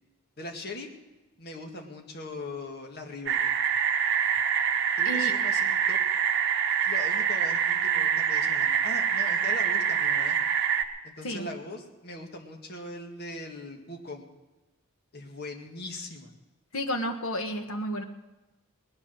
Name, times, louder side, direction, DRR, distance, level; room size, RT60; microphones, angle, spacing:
voice 1, 0.4-0.9 1.4-3.4 5.0-6.0 6.8-10.4 11.0-14.3 15.1-16.3, left 2 dB, 50° left, 2 dB, 2.0 m, -40 dB
sound 1, 3.3-10.8, right 7 dB, 55° right, 1.1 m, -25 dB
voice 2, 16.7-18.0, equal, 75° left, 4 dB, 1.6 m, -31 dB
19.0 x 11.0 x 6.4 m, 1.0 s
head